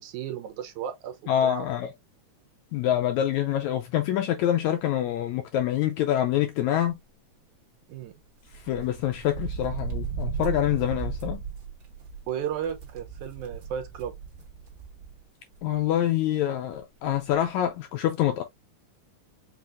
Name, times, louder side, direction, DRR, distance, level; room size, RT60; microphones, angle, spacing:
voice 1, 0.0-1.2 1.4-1.7 7.9-8.1 12.3-14.1, right 9 dB, 75° right, 2.2 m, -34 dB
voice 2, 1.3-1.9 2.7-7.0 8.6-11.4 15.6-18.4, left 11 dB, 80° left, 1.7 m, -26 dB
sound 1, 8.5-15.2 15.5-15.6 16.7-16.8 17.1-17.3, right 6 dB, 40° right, 2.2 m, -36 dB
6.0 x 3.0 x 2.5 m
omnidirectional pair, 3.7 m